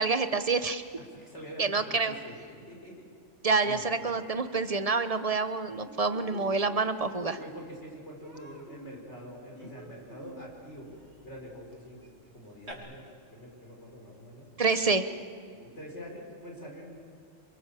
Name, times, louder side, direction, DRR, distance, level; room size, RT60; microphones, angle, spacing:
voice 1, 0.0-0.8 1.6-2.1 3.4-7.4 14.6-15.1, right 4 dB, 30° right, 10 dB, 1.1 m, -27 dB
voice 2, 1.0-2.4 2.7-3.0 3.5-3.8 6.3-10.9 11.2-14.5 15.5-16.9, equal, 55° left, -1 dB, 6.3 m, -45 dB
Human voice, 7.6-7.8 8.2-12.7, right 1 dB, 50° right, 3.9 m, -50 dB
27.5 x 24.5 x 7.8 m, 2.4 s
omnidirectional pair, 1.4 m